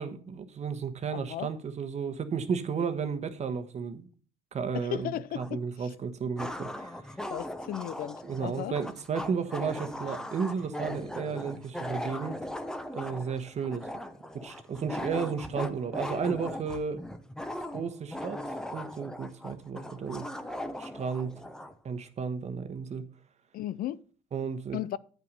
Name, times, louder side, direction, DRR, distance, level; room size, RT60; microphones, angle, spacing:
voice 1, 0.0-4.1 4.5-7.0 8.2-12.3 12.9-13.9 14.3-17.0 17.7-18.4 18.7-20.3 20.8-21.3 21.8-23.0 24.3-24.8, right 6 dB, 40° right, 1.1 m, -33 dB
voice 2, 1.1-1.5 4.7-5.9 7.3-8.7 23.5-24.0 24.7-25.0, left 12 dB, 60° left, 0.4 m, -35 dB
sound 1, 5.4-5.5 6.4-21.8, left 1 dB, 5° left, 0.7 m, -39 dB
9.0 x 5.8 x 5.3 m
cardioid pair, 110°, 17 cm